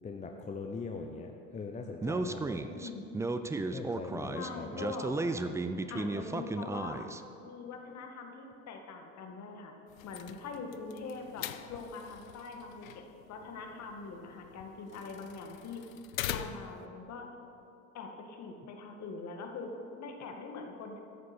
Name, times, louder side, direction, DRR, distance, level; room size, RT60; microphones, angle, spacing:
voice 1, 0.0-2.7 3.7-4.9, left 4 dB, 20° left, 4 dB, 0.8 m, -41 dB
Speech, 2.0-7.2, right 3 dB, 10° right, 0.4 m, -34 dB
voice 2, 2.7-3.1 4.3-5.1 5.9-7.1 7.4-9.7 10.0-15.8 16.3-17.3 17.9-21.0, left 4 dB, 45° left, 3 dB, 1.9 m, -43 dB
sound 1, 9.9-16.9, left 12 dB, 85° left, 0.6 m, -44 dB
13.5 x 11.0 x 4.4 m, 2.7 s
hypercardioid pair, 85°, 40 cm